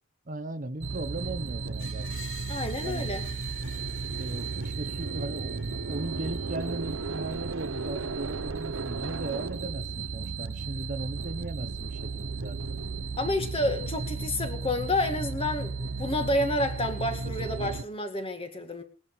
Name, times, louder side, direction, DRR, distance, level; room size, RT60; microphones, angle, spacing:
voice 1, 0.3-2.1 2.8-3.0 4.2-12.6, right 2 dB, 40° right, 0.9 m, -37 dB
sound 1, 0.8-17.8, right 4 dB, 70° right, 0.9 m, -34 dB
Screech, 1.8-6.8, left 4 dB, 65° left, 3.9 m, -49 dB
voice 2, 2.5-3.2 13.2-18.8, left 1 dB, 25° left, 2.1 m, -29 dB
19.5 x 11.0 x 5.7 m
head